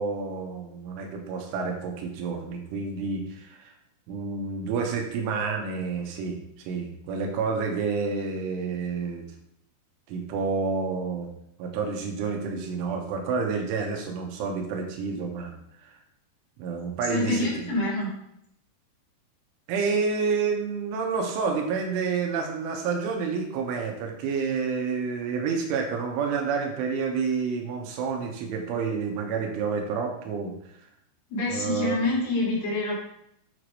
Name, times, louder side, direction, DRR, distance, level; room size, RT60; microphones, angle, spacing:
voice 1, 0.0-3.7 4.1-9.3 10.1-11.3 11.6-15.5 15.8-15.9 16.6-17.7 19.7-30.5 31.5-32.0, right 5 dB, 80° right, 2 dB, 3.5 m, -29 dB
voice 2, 17.1-18.1 31.3-33.0, left 2 dB, 55° left, -5 dB, 3.9 m, -26 dB
9.0 x 4.7 x 4.8 m, 0.74 s
omnidirectional pair, 5.8 m